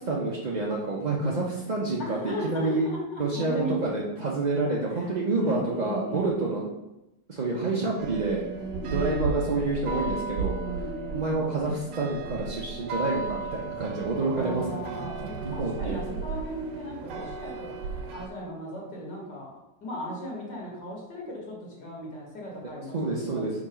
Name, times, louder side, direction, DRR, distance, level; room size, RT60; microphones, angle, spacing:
voice 1, 0.0-2.9 3.2-6.7 7.3-8.4 8.9-10.6 11.1-14.8 15.4-16.1 22.9-23.5, right 3 dB, 50° right, -4 dB, 0.5 m, -28 dB
voice 2, 2.0-3.8 4.9-6.6 8.6-9.3 10.6-11.4 14.2-17.8 18.1-19.5 19.8-23.5, equal, 70° left, -3 dB, 2.4 m, -37 dB
sound 1, 8.0-18.3, right 4 dB, 90° right, 1.4 m, -35 dB
5.1 x 4.0 x 5.6 m, 0.95 s
omnidirectional pair, 1.9 m